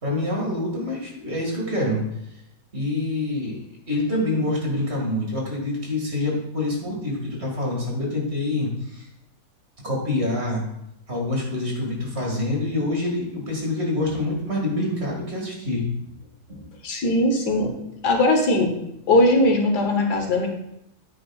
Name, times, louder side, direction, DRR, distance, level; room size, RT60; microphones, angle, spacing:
voice 1, 0.0-2.0 2.7-3.6 3.9-9.1 9.8-10.6 11.1-15.8 16.5-16.7, left 2 dB, 40° right, -2 dB, 2.4 m, -26 dB
voice 2, 16.8-17.7 18.0-18.7 19.1-20.5, left 1 dB, 85° left, 2 dB, 1.8 m, -19 dB
9.5 x 8.5 x 2.4 m, 0.81 s
omnidirectional pair, 1.7 m